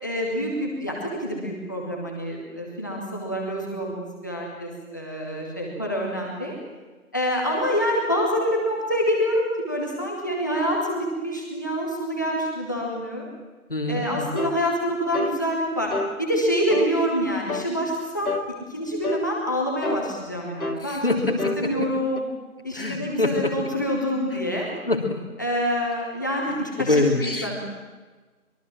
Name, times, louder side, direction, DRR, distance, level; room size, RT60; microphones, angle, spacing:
voice 1, 0.0-6.6 7.1-13.2 13.9-15.9 16.2-18.3 18.7-21.2 21.6-22.2 22.6-24.7 25.4-26.9 27.2-27.6, equal, 15° left, -2 dB, 2.3 m, -26 dB
voice 2, 13.7-14.4 20.8-21.9 22.7-23.5 24.3-24.4 24.9-25.2 26.8-27.5, left 2 dB, 40° left, 4 dB, 2.9 m, -25 dB
sound 1, 14.4-14.6 15.1-15.4 15.9-16.2 16.7-16.9 17.5-17.7 18.3-18.5 19.0-19.3 19.8-20.1 20.6-20.9 21.4-21.6 22.2-22.3, left 2 dB, 80° left, 1.9 m, -28 dB
24.5 x 22.5 x 7.6 m, 1.3 s
figure-of-eight pair, 175°, 43 cm